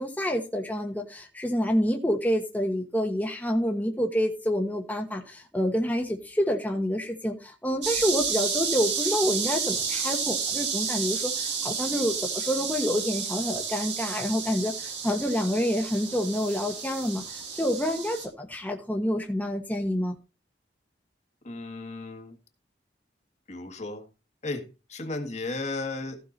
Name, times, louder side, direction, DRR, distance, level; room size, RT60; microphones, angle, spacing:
voice 1, 0.0-20.1, equal, 10° left, 1.2 m, -28 dB
sound 1, 7.8-18.3, right 6 dB, 80° right, 4.2 m, -31 dB
voice 2, 21.4-22.4 23.5-24.0 24.4-24.6 24.9-26.2, left 3 dB, 40° left, 1.7 m, -34 dB
15.0 x 5.8 x 4.1 m
head